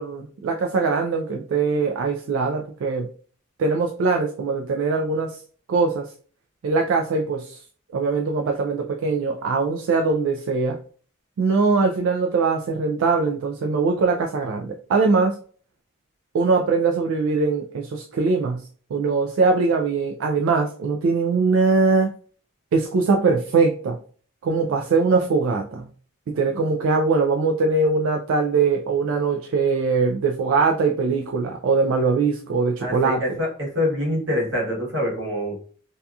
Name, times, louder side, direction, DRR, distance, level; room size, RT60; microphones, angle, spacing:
voice 1, 0.0-3.1 3.6-5.4 5.7-6.1 6.6-7.6 7.9-10.8 11.4-15.4 16.3-22.1 22.7-24.0 24.4-25.9 26.3-33.4, right 4 dB, 80° right, 2 dB, 0.3 m, -22 dB
voice 2, 32.8-35.6, left 1 dB, 60° right, -3 dB, 1.1 m, -25 dB
2.7 x 2.3 x 2.3 m, 0.44 s
head